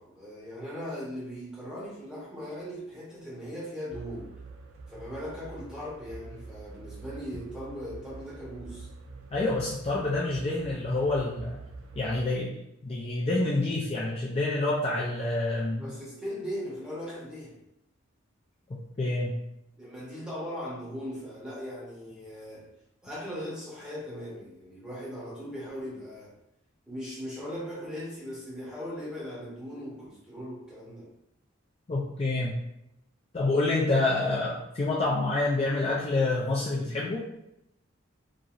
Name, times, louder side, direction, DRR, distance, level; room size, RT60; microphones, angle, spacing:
voice 1, 0.0-4.3 4.9-8.9 15.8-17.6 19.8-22.6 23.0-26.3 26.9-31.1, equal, 5° right, -6 dB, 0.8 m, -39 dB
sound 1, 3.9-12.3, right 3 dB, 75° right, 0.4 m, -46 dB
voice 2, 9.3-11.6 12.0-15.8 19.0-19.4 31.9-32.6 33.3-37.3, left 2 dB, 30° left, -5 dB, 0.3 m, -27 dB
2.9 x 2.5 x 2.4 m, 0.81 s
head